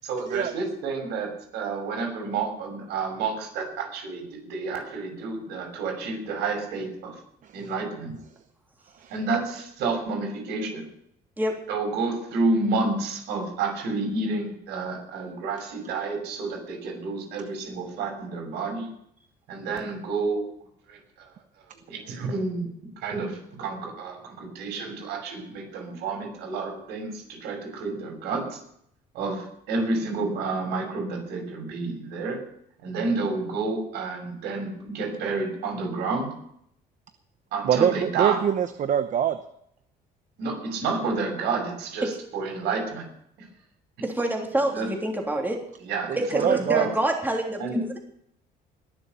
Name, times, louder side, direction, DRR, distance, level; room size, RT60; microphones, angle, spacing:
voice 1, 0.0-7.1 7.5-8.1 9.1-10.9 11.7-18.9 19.5-20.5 20.9-21.0 21.9-22.7 23.0-28.6 29.1-32.4 32.8-36.3 37.5-38.4 40.4-43.1 44.7-44.9 45.8-46.9 47.6-47.8, right 3 dB, 85° right, 2 dB, 6.1 m, -30 dB
voice 2, 37.6-39.4 46.1-46.8, right 9 dB, 50° right, 10 dB, 0.9 m, -24 dB
voice 3, 44.0-45.6 46.2-47.5, right 1 dB, 10° right, 0 dB, 3.2 m, -26 dB
21.0 x 7.2 x 6.9 m, 0.70 s
cardioid pair, 110°, 17 cm